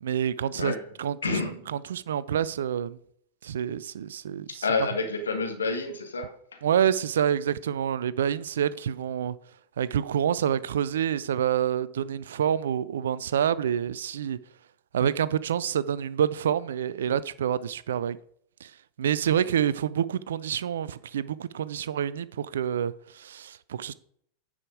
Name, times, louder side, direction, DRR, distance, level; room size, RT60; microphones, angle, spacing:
voice 1, 0.0-1.4 1.9-3.0 3.4-4.6 6.6-9.4 9.8-14.4 14.9-18.2 18.6-18.7 19.0-23.9, right 9 dB, 65° right, 0.3 m, -27 dB
voice 2, 1.2-1.7 4.5-6.6 19.3-19.7, left 4 dB, 70° left, 1.4 m, -30 dB
9.7 x 4.9 x 4.7 m
figure-of-eight pair, 90°, 0 cm